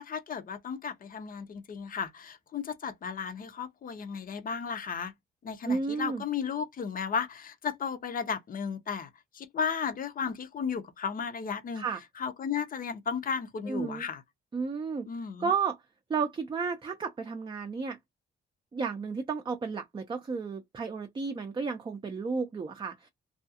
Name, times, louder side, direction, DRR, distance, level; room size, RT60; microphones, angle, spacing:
voice 1, 0.0-5.1 5.4-11.8 12.2-14.2 15.1-15.5, left 6 dB, 45° left, 0.6 m, -34 dB
voice 2, 5.7-6.2 11.8-12.0 13.7-14.0 14.5-15.1 15.4-15.8 16.1-18.0 18.7-23.1, right 5 dB, 25° right, 0.5 m, -32 dB
2.4 x 2.3 x 2.7 m
cardioid pair, 90°, 20 cm